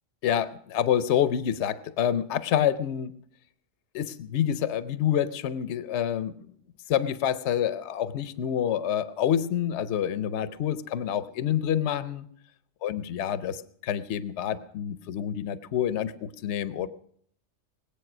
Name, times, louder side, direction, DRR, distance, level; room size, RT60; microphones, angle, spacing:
voice 1, 0.2-3.1 3.9-6.4 6.9-12.3 12.8-16.9, left 9 dB, 65° left, 14 dB, 1.0 m, -27 dB
20.5 x 8.4 x 6.1 m, 0.63 s
omnidirectional pair, 1.3 m